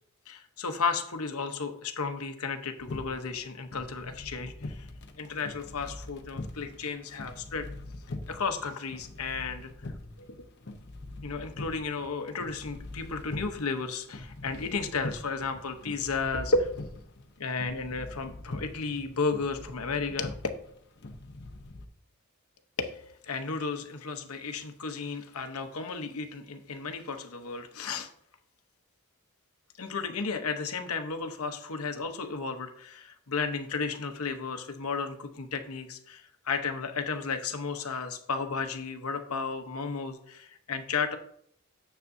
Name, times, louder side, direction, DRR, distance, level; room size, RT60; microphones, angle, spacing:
voice 1, 0.3-4.9 5.2-7.7 8.3-9.7 10.2-10.4 11.2-16.7 17.4-20.4 22.8-28.1 29.8-41.2, left 4 dB, 85° left, 7 dB, 0.9 m, -33 dB
sound 1, 2.8-21.8, left 2 dB, 50° left, 0.8 m, -43 dB
9.6 x 6.7 x 2.7 m, 0.67 s
head